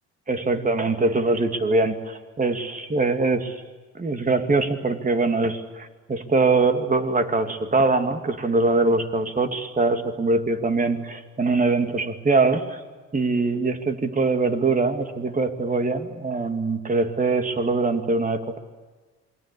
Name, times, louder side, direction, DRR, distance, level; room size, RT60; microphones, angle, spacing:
voice 1, 0.3-3.6 3.9-12.8 13.1-18.6, right 3 dB, 25° right, 7 dB, 2.4 m, -23 dB
27.5 x 22.5 x 8.5 m, 1.3 s
cardioid pair, 90°, 30 cm